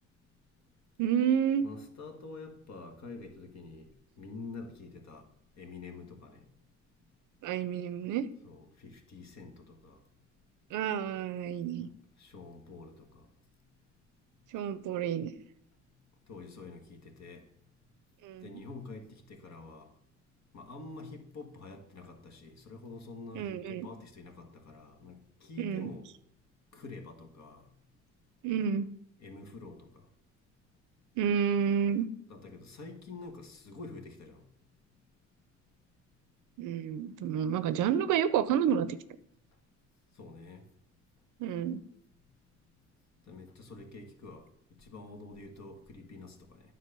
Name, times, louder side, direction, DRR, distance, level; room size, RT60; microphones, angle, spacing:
voice 1, 1.0-1.7 7.4-8.3 10.7-11.9 14.5-15.3 18.2-18.5 23.4-23.9 25.6-25.9 28.4-28.9 31.2-32.1 36.6-39.0 41.4-41.8, right 8 dB, 85° right, 0.7 m, -29 dB
voice 2, 1.6-3.9 4.2-5.2 5.6-6.4 8.4-10.0 12.2-13.3 16.3-17.4 18.4-19.9 20.5-26.0 26.7-27.6 29.2-30.0 32.3-34.4 40.2-40.7 43.3-44.5 44.8-46.6, left 3 dB, 65° left, 1.7 m, -47 dB
9.4 x 4.1 x 6.7 m
cardioid pair, 90°, 30 cm